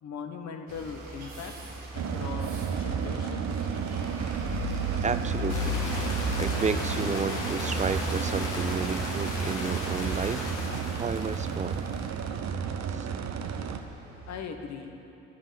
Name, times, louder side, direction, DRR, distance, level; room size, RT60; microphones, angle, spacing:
voice 1, 0.0-1.5 1.9-3.7 14.3-15.0, left 6 dB, 55° left, 5 dB, 1.2 m, -39 dB
sound 1, 0.7-14.4, equal, 85° right, 1.6 m, -37 dB
sound 2, 1.9-13.8, right 7 dB, 55° right, 0.8 m, -32 dB
voice 2, 5.0-5.8 6.3-10.5 10.9-11.8 12.9-13.1, right 5 dB, 20° right, 12 dB, 0.5 m, -32 dB
sound 3, 5.5-12.1, left 2 dB, 70° left, 1.8 m, -37 dB
12.0 x 5.5 x 8.9 m, 2.8 s
hypercardioid pair, 45°, 32 cm